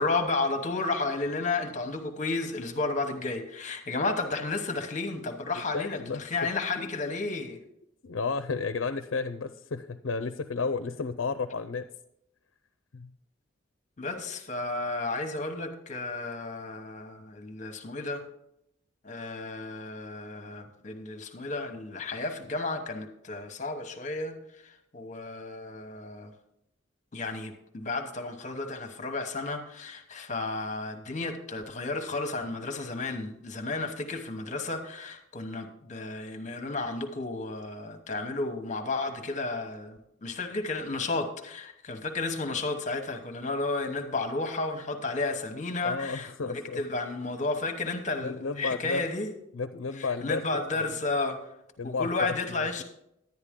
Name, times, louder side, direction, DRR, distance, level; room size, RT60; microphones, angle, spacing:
voice 1, 0.0-7.6 14.0-18.2 19.0-24.3 24.6-26.3 27.1-49.3 49.9-51.4 51.8-52.8, left 3 dB, 35° left, 5 dB, 1.1 m, -32 dB
voice 2, 5.7-6.2 8.0-11.8 12.9-13.1 45.8-46.8 48.2-49.0 49.5-50.4 50.7-50.9 51.8-52.4, left 4 dB, 80° left, 9 dB, 0.5 m, -32 dB
10.5 x 9.8 x 3.7 m, 0.78 s
head